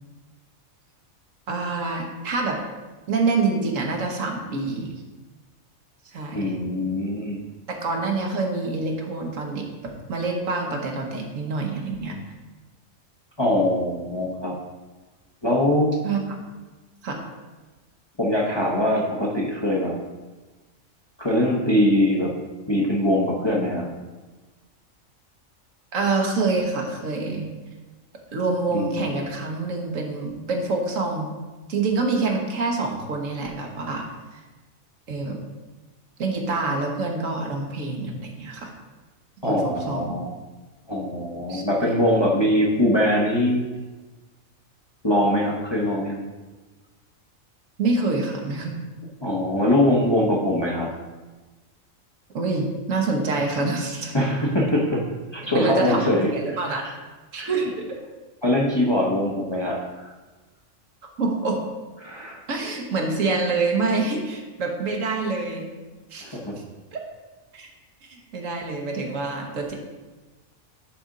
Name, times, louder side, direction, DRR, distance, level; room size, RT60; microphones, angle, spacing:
voice 1, 1.5-2.6 3.1-4.9 6.0-6.5 7.7-9.7 10.1-12.2 16.0-16.2 17.0-17.2 25.9-27.5 28.3-31.4 31.7-34.1 34.3-34.4 35.1-35.4 36.2-38.7 39.4-40.2 41.5-41.6 47.8-48.8 52.3-54.1 55.4-56.8 57.3-58.0 61.2-61.6 62.5-65.7 66.1-66.4 66.9-67.0 67.5-67.7 68.0-69.7, right 3 dB, 75° right, 1 dB, 1.4 m, -26 dB
voice 2, 6.3-7.4 13.4-14.6 15.4-16.0 18.2-19.9 21.2-22.3 22.7-23.9 28.7-28.9 39.4-40.3 40.9-43.7 45.0-46.2 49.2-50.9 54.1-55.0 55.3-56.6 57.4-57.5 58.4-60.1 62.0-62.4 66.2-66.6, left 1 dB, 25° left, -3 dB, 0.8 m, -22 dB
10.5 x 4.2 x 3.8 m, 1.2 s
omnidirectional pair, 1.4 m